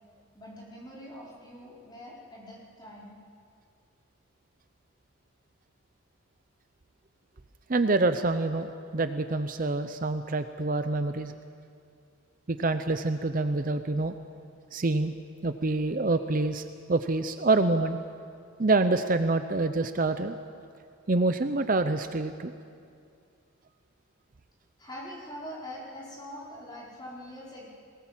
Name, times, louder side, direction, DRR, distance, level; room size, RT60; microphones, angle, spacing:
voice 1, 0.3-3.2 24.8-27.7, equal, 20° left, -5 dB, 5.0 m, -43 dB
voice 2, 7.7-11.3 12.5-14.2 14.7-15.1 15.4-16.6 16.9-18.0 18.6-20.4 21.1-22.5, right 2 dB, 40° right, 9 dB, 0.6 m, -26 dB
22.0 x 19.0 x 7.5 m, 2.4 s
head